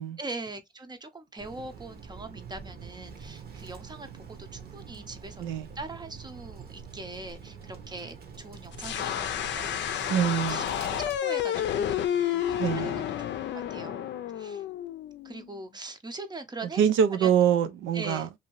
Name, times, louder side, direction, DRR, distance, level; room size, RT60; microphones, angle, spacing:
voice 1, 0.2-5.5 5.7-13.3 13.5-14.0 14.3-14.6 15.2-16.8 17.2-17.3 17.9-18.3, right 2 dB, 20° right, 0.6 m, -42 dB
Bird, 1.4-11.2, right 6 dB, 50° right, 1.0 m, -45 dB
sound 1, 8.7-15.5, left 10 dB, 65° left, 0.5 m, -30 dB
voice 2, 10.1-10.7 12.6-13.0 16.8-18.3, right 8 dB, 90° right, 0.5 m, -24 dB
2.7 x 2.7 x 2.9 m
cardioid pair, 90°, 20 cm